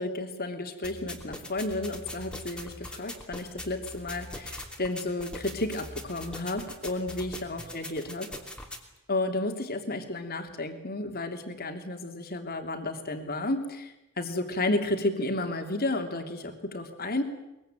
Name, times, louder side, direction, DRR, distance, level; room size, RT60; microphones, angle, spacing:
voice 1, 0.0-8.3 9.1-17.2, left 2 dB, 45° left, 5 dB, 3.0 m, -32 dB
sound 1, 0.8-8.8, left 1 dB, 5° left, 3.0 m, -42 dB
22.5 x 22.5 x 9.1 m, 0.94 s
head